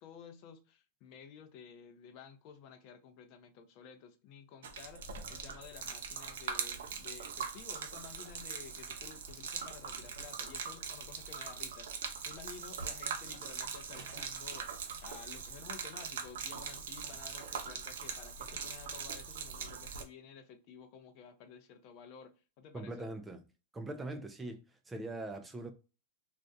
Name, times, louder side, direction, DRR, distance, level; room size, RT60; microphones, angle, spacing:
voice 1, 0.0-23.1, left 7 dB, 45° left, 0.5 m, -53 dB
Gurgling / Liquid, 4.6-20.0, right 6 dB, 80° right, 0.4 m, -42 dB
sound 1, 9.2-9.5 10.0-10.6 12.2-12.3 12.7-13.3 13.9-14.4, right 2 dB, 55° right, 0.9 m, -52 dB
voice 2, 22.7-23.4 23.7-25.7, right 2 dB, 10° right, 0.3 m, -42 dB
2.4 x 2.1 x 2.6 m
hypercardioid pair, 130°, 0 cm